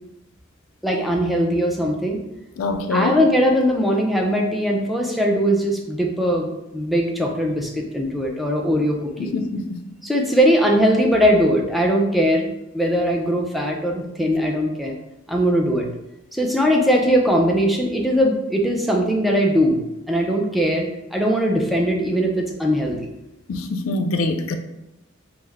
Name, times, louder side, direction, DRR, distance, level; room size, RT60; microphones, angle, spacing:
voice 1, 0.8-2.2 2.9-9.3 10.0-12.5 12.7-15.0 15.3-15.9 16.3-19.8 20.1-23.1, equal, ahead, -1 dB, 0.4 m, -20 dB
voice 2, 2.6-3.2 9.2-9.8 23.5-24.5, left 3 dB, 80° left, 6 dB, 0.4 m, -24 dB
3.3 x 2.0 x 3.4 m, 0.90 s
head